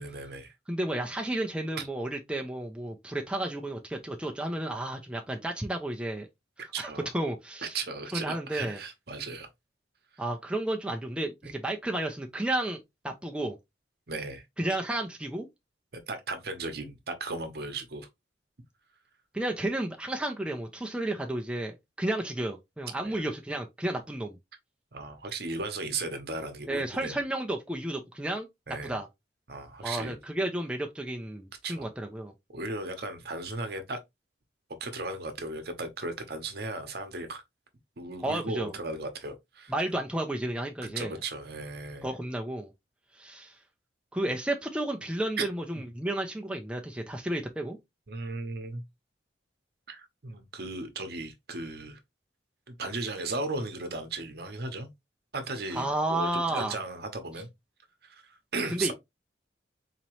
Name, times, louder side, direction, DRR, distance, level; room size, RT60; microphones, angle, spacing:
voice 1, 0.0-0.5 1.8-1.9 6.7-7.1 7.6-9.5 11.4-11.5 14.1-14.4 16.1-18.1 23.0-23.2 24.9-27.2 28.7-29.0 29.5-30.2 31.6-31.9 32.5-34.0 34.8-37.4 38.0-39.7 40.8-42.1 45.4-45.5 45.7-45.8 48.1-48.8 49.9-52.0 52.7-54.9 55.3-57.5 58.0-58.9, right 3 dB, 55° right, 0.9 m, -36 dB
voice 2, 0.7-6.3 6.6-6.9 7.1-7.8 8.1-8.8 10.2-12.8 13.0-13.6 14.6-15.5 19.3-24.4 26.7-28.5 28.8-29.1 29.8-32.3 38.2-38.8 39.7-41.2 42.0-42.7 43.1-43.6 44.1-47.8 55.7-56.8 58.7-58.9, right 1 dB, 5° right, 0.4 m, -32 dB
4.1 x 2.9 x 3.0 m
head